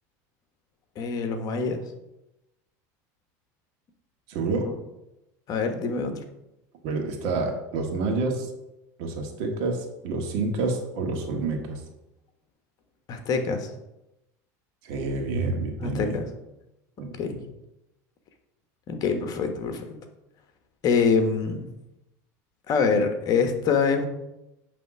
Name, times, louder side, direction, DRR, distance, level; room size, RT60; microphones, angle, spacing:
voice 1, 1.0-1.8 4.6-4.7 5.5-6.2 13.1-13.7 15.8-16.3 17.1-17.4 18.9-20.0 20.8-21.7 22.7-24.1, left 5 dB, 45° left, 6 dB, 1.2 m, -25 dB
voice 2, 4.3-4.7 6.8-8.5 9.0-11.8 14.8-16.2 17.0-17.5, right 3 dB, 65° right, 3 dB, 1.8 m, -28 dB
8.9 x 3.4 x 6.0 m, 0.93 s
supercardioid pair, 115°, 9 cm